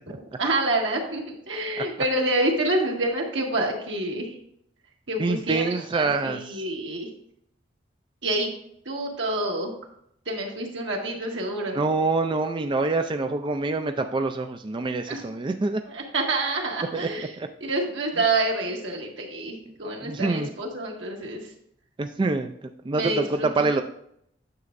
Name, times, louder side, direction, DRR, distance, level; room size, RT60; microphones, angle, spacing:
voice 1, 0.1-4.3 5.1-7.1 8.2-8.5 8.8-9.7 10.2-11.8 15.1-15.2 15.8-17.3 17.6-21.4 22.9-23.7, right 2 dB, 85° right, 0 dB, 1.6 m, -27 dB
voice 2, 5.2-6.6 11.6-15.8 16.9-17.0 17.4-17.5 20.0-20.5 22.0-22.5 22.9-23.8, right 3 dB, 25° right, 6 dB, 0.4 m, -26 dB
9.5 x 6.9 x 2.6 m, 0.72 s
head